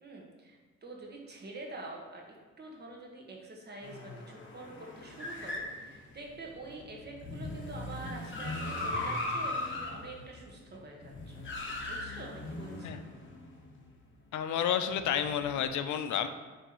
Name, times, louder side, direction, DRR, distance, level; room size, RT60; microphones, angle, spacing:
voice 1, 0.0-11.4 11.9-13.0, right 2 dB, 35° right, -1 dB, 1.4 m, -46 dB
sound 1, 3.8-13.7 14.8-15.6, left 2 dB, 40° left, 1.3 m, -39 dB
voice 2, 14.3-16.3, left 9 dB, 70° left, 10 dB, 0.5 m, -30 dB
9.9 x 3.4 x 3.0 m, 1.3 s
cardioid pair, 90°, 30 cm